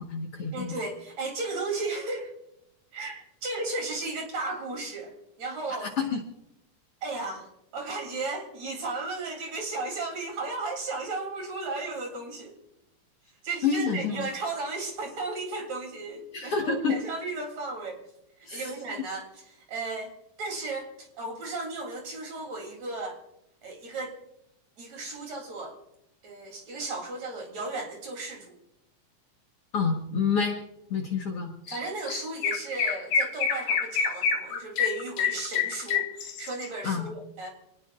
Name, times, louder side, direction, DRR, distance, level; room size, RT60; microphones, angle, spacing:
voice 1, 0.0-0.8 5.8-6.2 13.6-14.3 16.3-17.0 18.5-18.7 29.7-30.6 30.9-31.5 36.8-37.1, left 5 dB, 55° left, 1 dB, 2.0 m, -28 dB
voice 2, 0.5-2.3 2.9-5.9 7.0-7.5 7.7-12.5 13.4-18.0 18.5-23.2 23.6-24.2 24.8-25.8 26.2-28.6 31.7-37.5, right 3 dB, 55° right, 2 dB, 4.3 m, -35 dB
Chirp tweet, 31.7-31.8 32.1-36.7, left 6 dB, 90° left, 3.0 m, -27 dB
27.5 x 19.0 x 2.5 m, 0.82 s
omnidirectional pair, 3.8 m